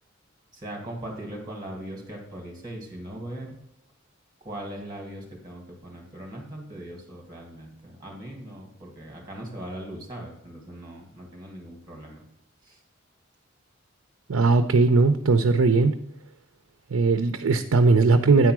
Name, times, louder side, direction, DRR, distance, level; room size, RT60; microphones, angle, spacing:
voice 1, 0.5-3.6 4.4-12.2 12.6-12.8, right 1 dB, 20° right, 1 dB, 2.7 m, -39 dB
voice 2, 14.3-15.9 16.9-18.5, right 3 dB, 90° right, 8 dB, 0.6 m, -19 dB
9.4 x 4.6 x 6.0 m, 0.78 s
head